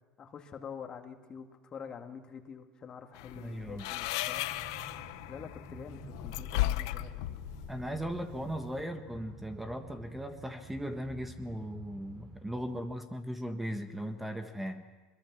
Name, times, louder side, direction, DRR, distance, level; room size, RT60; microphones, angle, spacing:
voice 1, 0.2-4.4 5.3-7.3, left 7 dB, 35° left, 5 dB, 2.0 m, -46 dB
sound 1, 3.2-8.8, left 16 dB, 75° left, 0.8 m, -36 dB
voice 2, 3.3-3.9 7.7-14.8, equal, 5° right, 7 dB, 1.4 m, -38 dB
Train, 4.2-13.1, right 3 dB, 45° right, 4.5 m, -50 dB
23.0 x 22.0 x 6.1 m, 1.3 s
supercardioid pair, 100°, 2 cm